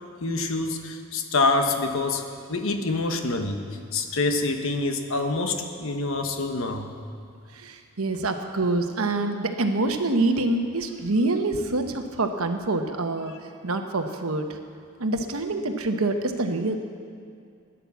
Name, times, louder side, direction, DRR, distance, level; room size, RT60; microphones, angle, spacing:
voice 1, 0.2-3.6 3.9-6.9, left 3 dB, 70° left, 5 dB, 1.1 m, -26 dB
voice 2, 7.5-13.3 13.6-14.6 15.0-16.8, right 2 dB, 85° right, 6 dB, 1.1 m, -26 dB
14.5 x 10.0 x 7.0 m, 2.3 s
head